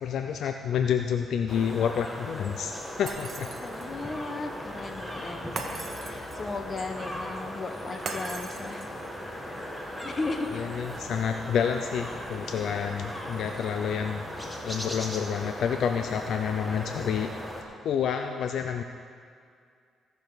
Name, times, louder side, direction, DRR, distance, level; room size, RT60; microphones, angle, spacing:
voice 1, 0.0-3.5 10.5-14.2 14.6-17.3 17.8-18.8, left 7 dB, 70° left, 6 dB, 0.5 m, -29 dB
sound 1, 1.5-17.6, equal, 10° left, 1.5 m, -38 dB
Shatter, 3.1-4.0 5.6-6.5 8.1-9.1, right 4 dB, 45° right, 1.2 m, -39 dB
voice 2, 3.6-8.8 10.0-10.5 14.6-14.7, left 3 dB, 35° left, 6 dB, 1.1 m, -36 dB
17.0 x 6.7 x 4.1 m, 2.3 s
cardioid pair, 90°, 0 cm